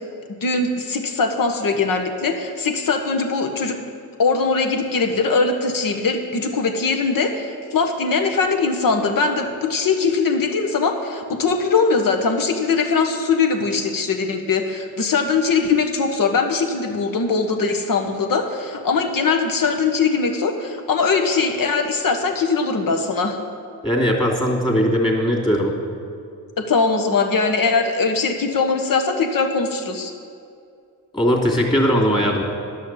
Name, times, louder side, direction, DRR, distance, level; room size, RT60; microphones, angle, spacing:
voice 1, 0.4-3.8 4.2-23.4 26.6-30.1, left 4 dB, 50° left, 5 dB, 1.5 m, -21 dB
voice 2, 23.8-25.7 31.1-32.4, equal, 10° left, -1 dB, 2.8 m, -19 dB
10.5 x 6.4 x 7.4 m, 2.4 s
supercardioid pair, 65°, 42 cm